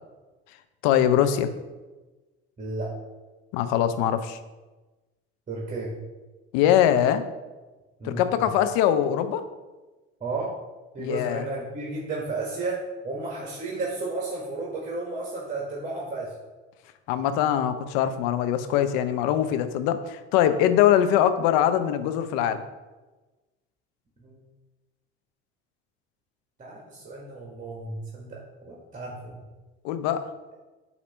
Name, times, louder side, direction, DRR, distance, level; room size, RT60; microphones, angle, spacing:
voice 1, 0.8-1.5 3.5-4.4 6.5-7.2 8.0-9.4 11.0-11.5 17.1-22.6 29.8-30.2, left 10 dB, 60° left, 10 dB, 0.7 m, -22 dB
voice 2, 2.6-2.9 5.5-5.9 8.0-8.5 10.2-10.5 10.9-16.3 24.2-24.4 26.6-29.4, right 3 dB, 25° right, -3 dB, 1.5 m, -33 dB
8.3 x 2.9 x 5.4 m, 1.2 s
figure-of-eight pair, 60°, 32 cm